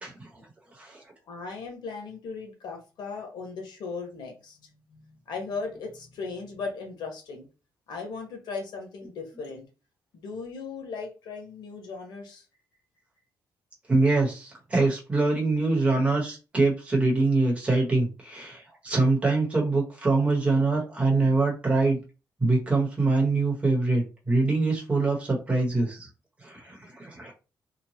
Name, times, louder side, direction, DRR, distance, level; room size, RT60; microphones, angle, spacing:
voice 1, 0.0-0.4 0.8-1.0 13.9-22.0 22.4-26.1 26.4-27.3, right 3 dB, 15° right, -2 dB, 1.0 m, -24 dB
voice 2, 1.3-4.6 4.9-7.5 7.9-9.6 10.1-12.4, left 4 dB, 90° left, 2 dB, 1.1 m, -37 dB
3.0 x 2.2 x 2.7 m, 0.32 s
wide cardioid pair, 170°, 7 cm